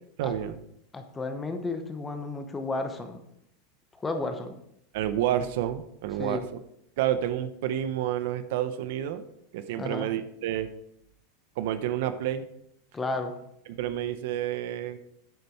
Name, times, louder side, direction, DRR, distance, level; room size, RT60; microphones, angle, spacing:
voice 1, 0.2-0.6 4.9-6.4 7.0-9.2 9.5-10.7 11.6-12.5 13.7-15.0, right 11 dB, 65° right, 11 dB, 0.8 m, -29 dB
voice 2, 0.9-3.2 4.0-4.5 6.2-6.4 9.8-10.1 12.9-13.3, left 3 dB, 15° left, 7 dB, 1.0 m, -32 dB
8.7 x 6.7 x 4.6 m, 0.75 s
supercardioid pair, 145°, 0 cm